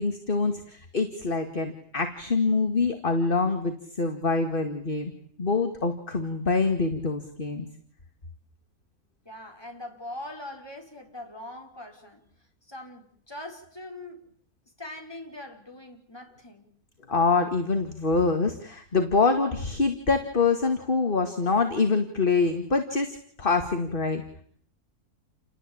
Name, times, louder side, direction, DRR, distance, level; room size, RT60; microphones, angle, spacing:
voice 1, 0.0-5.1 5.4-7.7 17.1-24.2, left 4 dB, 35° left, 2.3 m, -25 dB
voice 2, 9.2-12.2 12.6-14.2 14.8-16.7, left 1 dB, 15° left, 4.9 m, -42 dB
30.0 x 20.0 x 8.7 m
omnidirectional pair, 1.6 m